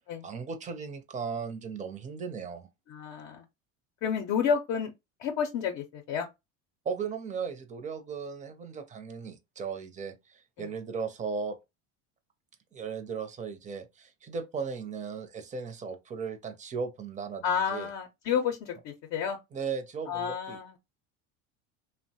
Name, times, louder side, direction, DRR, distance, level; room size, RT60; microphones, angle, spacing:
voice 1, 0.2-2.7 6.8-11.6 12.7-17.9 19.5-20.8, right 5 dB, 20° right, 0.6 m, -37 dB
voice 2, 2.9-3.4 4.0-4.9 5.2-6.3 10.6-10.7 17.4-19.4 20.1-20.7, left 7 dB, 55° left, 0.6 m, -30 dB
2.9 x 2.1 x 2.7 m
supercardioid pair, 110°, 34 cm